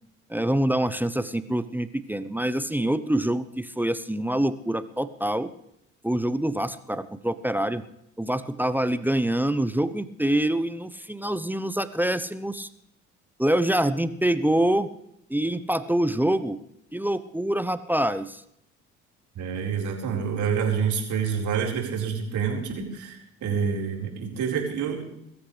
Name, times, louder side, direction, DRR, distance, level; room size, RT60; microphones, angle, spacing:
voice 1, 0.3-5.5 6.0-7.8 8.2-12.7 13.4-14.9 15.3-16.6 16.9-18.4, right 1 dB, 5° right, 13 dB, 0.8 m, -25 dB
voice 2, 19.3-25.1, right 6 dB, 55° right, 0 dB, 4.8 m, -27 dB
23.0 x 14.0 x 3.4 m, 0.79 s
hypercardioid pair, 65°, 35 cm